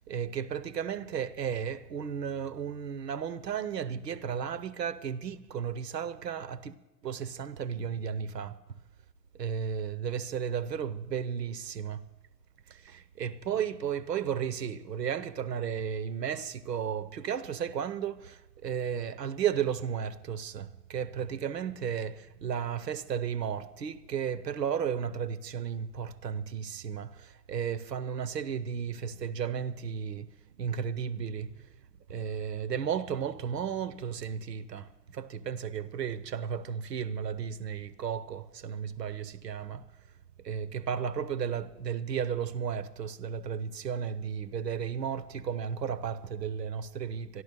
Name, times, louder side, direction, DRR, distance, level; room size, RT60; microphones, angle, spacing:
voice 1, 0.0-6.7 7.0-8.6 9.4-12.1 12.7-30.3 30.6-31.5 32.1-39.8 40.4-47.4, right 8 dB, 75° right, 0.8 m, -34 dB
12.5 x 11.5 x 6.7 m
figure-of-eight pair, 95°, 49 cm